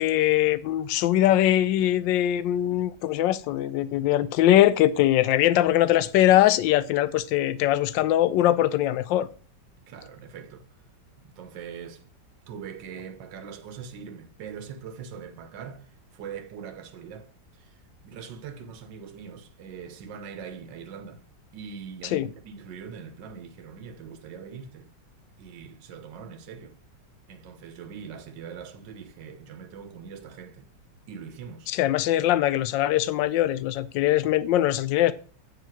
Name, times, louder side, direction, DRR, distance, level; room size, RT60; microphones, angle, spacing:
voice 1, 0.0-9.3 22.1-22.3 31.7-35.1, left 13 dB, 85° left, 1.3 m, -22 dB
voice 2, 9.9-10.7 11.2-12.0 12.5-21.2 21.5-24.9 25.4-26.8 27.3-30.7 31.1-31.7, right 7 dB, 80° right, 1.6 m, -42 dB
9.0 x 5.0 x 5.9 m
omnidirectional pair, 2.0 m